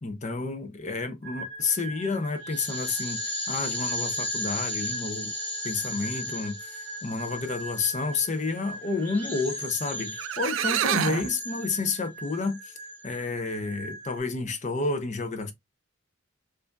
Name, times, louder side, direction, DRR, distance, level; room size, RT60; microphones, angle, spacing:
voice 1, 0.0-5.3 5.6-12.8 13.0-15.5, left 4 dB, 40° left, 0.6 m, -30 dB
sound 1, 1.2-14.2, equal, 10° left, 1.8 m, -36 dB
sound 2, 9.9-10.0 10.2-11.3, right 9 dB, 75° right, 0.3 m, -27 dB
4.7 x 2.6 x 2.3 m
head